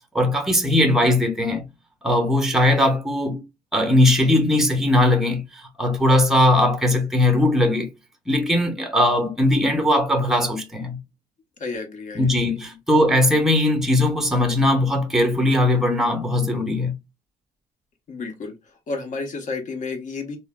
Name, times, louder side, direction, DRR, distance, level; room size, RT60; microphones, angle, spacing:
voice 1, 0.1-1.6 2.0-3.4 3.7-7.9 8.3-11.0 12.1-16.9, left 1 dB, ahead, 0.7 m, -19 dB
voice 2, 11.6-12.3 18.1-18.5 18.9-20.4, left 3 dB, 50° left, 1.0 m, -31 dB
3.0 x 2.1 x 2.2 m
cardioid pair, 110°, 17 cm